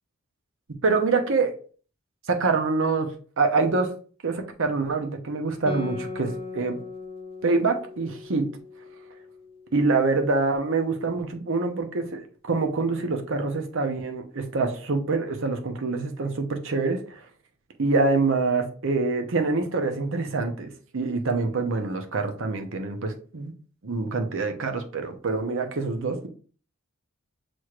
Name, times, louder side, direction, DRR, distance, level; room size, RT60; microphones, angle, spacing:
voice 1, 0.8-1.5 2.3-3.1 3.4-3.9 4.2-6.8 7.4-8.5 9.7-17.3 17.8-23.5 23.8-26.3, right 3 dB, 65° right, 5 dB, 0.8 m, -25 dB
Guitar, 5.7-10.6, left 3 dB, 25° left, 0.5 m, -39 dB
6.2 x 3.1 x 2.4 m, 0.41 s
head